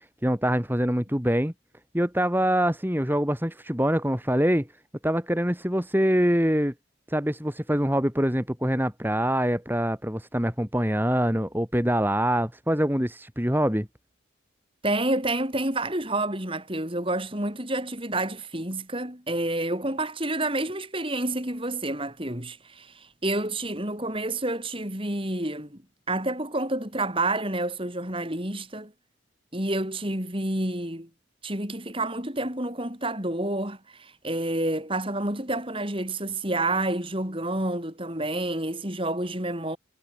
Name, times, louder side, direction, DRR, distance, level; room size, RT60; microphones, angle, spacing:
voice 1, 0.2-1.5 1.9-4.7 5.0-6.7 7.1-13.9, equal, 10° right, 4.5 m, -24 dB
voice 2, 14.8-25.8 26.1-28.9 29.5-31.1 31.4-39.8, right 2 dB, 25° right, 5.9 m, -29 dB
head